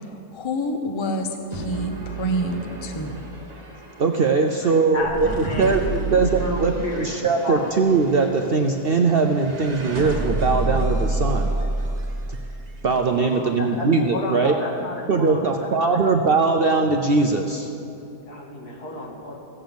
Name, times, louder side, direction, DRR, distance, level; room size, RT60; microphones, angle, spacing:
voice 1, 0.3-3.2, right 1 dB, 25° left, 5 dB, 0.7 m, -27 dB
sound 1, 1.5-12.8, right 2 dB, 30° right, 1.2 m, -29 dB
voice 2, 4.0-5.8 6.1-11.5 12.3-12.4 12.8-14.5 15.1-17.7, right 4 dB, 55° right, 4 dB, 0.6 m, -21 dB
voice 3, 4.6-7.7 13.2-16.0 18.3-19.4, left 1 dB, 90° left, -1 dB, 2.5 m, -32 dB
15.5 x 7.7 x 7.0 m, 2.8 s
omnidirectional pair, 1.6 m